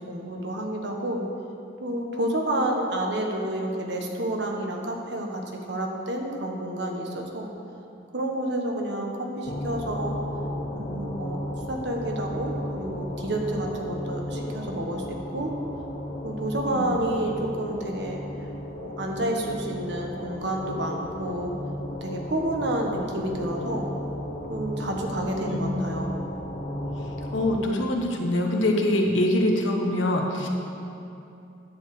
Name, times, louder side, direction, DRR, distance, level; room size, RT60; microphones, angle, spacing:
voice 1, 0.1-1.2 1.8-7.5 8.1-10.2 10.7-11.4 11.7-15.5 16.2-18.2 18.8-21.5 22.0-23.9 24.5-26.1, right 1 dB, 60° right, 1 dB, 1.2 m, -29 dB
sound 1, 9.4-27.6, left 1 dB, 50° left, 1.0 m, -34 dB
voice 2, 25.4-25.8 27.3-30.5, left 1 dB, 85° left, 1 dB, 1.2 m, -24 dB
10.0 x 4.8 x 7.8 m, 2.7 s
head